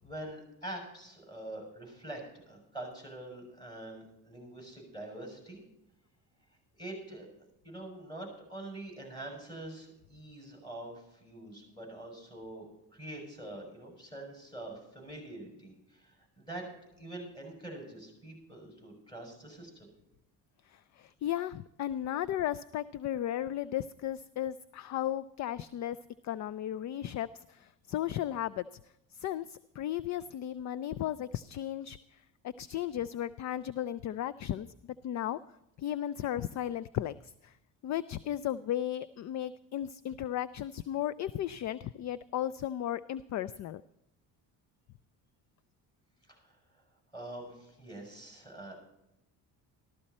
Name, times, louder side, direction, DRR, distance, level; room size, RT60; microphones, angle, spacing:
voice 1, 0.0-5.6 6.8-7.3 7.6-12.7 12.9-16.6 17.0-19.9 46.3-46.5 47.1-48.8, right 1 dB, 10° left, 1 dB, 6.6 m, -45 dB
voice 2, 20.7-26.0 26.2-28.6 29.1-32.0 32.6-35.4 35.8-37.5 37.8-43.8, left 11 dB, 45° left, 17 dB, 0.4 m, -35 dB
14.5 x 13.0 x 4.2 m, 0.86 s
cardioid pair, 105°, 39 cm